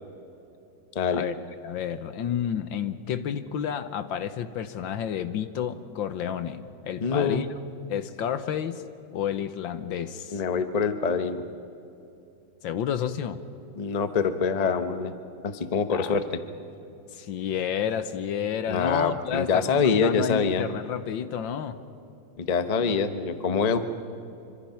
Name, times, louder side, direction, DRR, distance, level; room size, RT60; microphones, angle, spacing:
voice 1, 0.9-1.3 7.0-7.4 10.3-11.4 13.8-15.1 15.4-16.3 18.7-20.6 22.4-23.8, left 5 dB, 30° left, 9 dB, 0.7 m, -25 dB
voice 2, 1.6-7.5 7.9-8.8 9.1-10.4 12.6-13.4 15.9-16.2 17.1-21.8, left 8 dB, 75° left, 12 dB, 1.6 m, -30 dB
25.5 x 25.5 x 5.8 m, 2.8 s
omnidirectional pair, 2.2 m